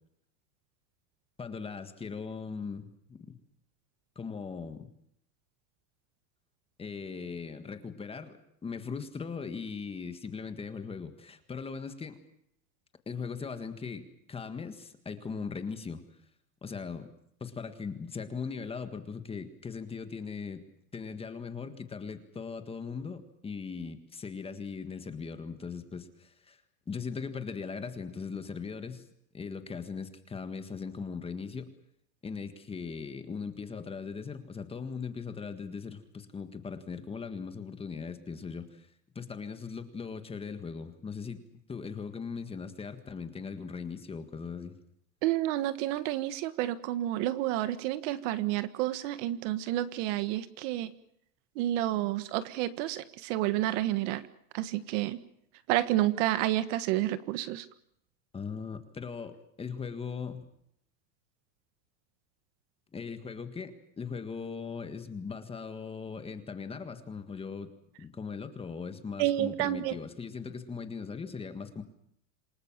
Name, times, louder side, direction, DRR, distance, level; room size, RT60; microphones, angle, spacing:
voice 1, 1.4-3.3 4.2-4.9 6.8-12.2 13.1-16.0 16.6-17.1 17.4-20.6 20.9-26.6 26.9-29.1 29.3-31.7 32.2-38.9 39.2-41.4 41.7-44.8 58.3-60.4 62.9-67.7 68.0-71.8, left 5 dB, 10° left, 9 dB, 1.7 m, -39 dB
voice 2, 45.2-50.9 51.6-54.2 54.5-55.2 55.7-57.7 69.2-70.0, right 14 dB, 50° right, 13 dB, 1.6 m, -30 dB
27.5 x 19.0 x 7.4 m, 0.72 s
supercardioid pair, 160°, 46 cm